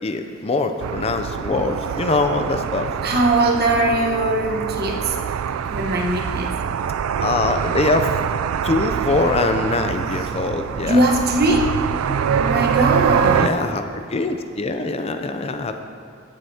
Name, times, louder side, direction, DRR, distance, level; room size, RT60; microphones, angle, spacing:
voice 1, 0.0-2.9 7.2-8.1 8.6-11.0 13.3-15.8, left 3 dB, 30° left, 7 dB, 0.4 m, -23 dB
sound 1, 0.8-13.5, right 8 dB, 85° right, 0.3 m, -24 dB
voice 2, 2.8-5.2 5.6-6.5 10.8-11.7 12.3-13.5, right 1 dB, 50° right, 0 dB, 1.1 m, -20 dB
16.5 x 7.8 x 2.8 m, 2.4 s
head